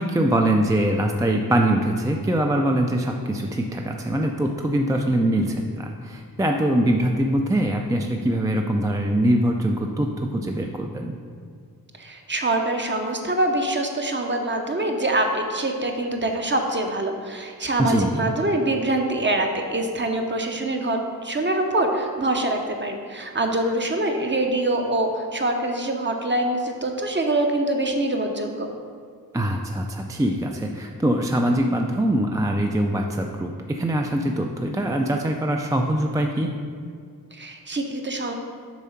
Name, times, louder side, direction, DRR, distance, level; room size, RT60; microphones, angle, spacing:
voice 1, 0.0-11.2 17.8-18.3 29.3-36.5, right 1 dB, 10° right, 2 dB, 0.3 m, -23 dB
voice 2, 12.0-28.7 37.3-38.3, right 1 dB, 30° right, 3 dB, 0.7 m, -24 dB
7.0 x 3.7 x 5.7 m, 2.2 s
wide cardioid pair, 110°, 36 cm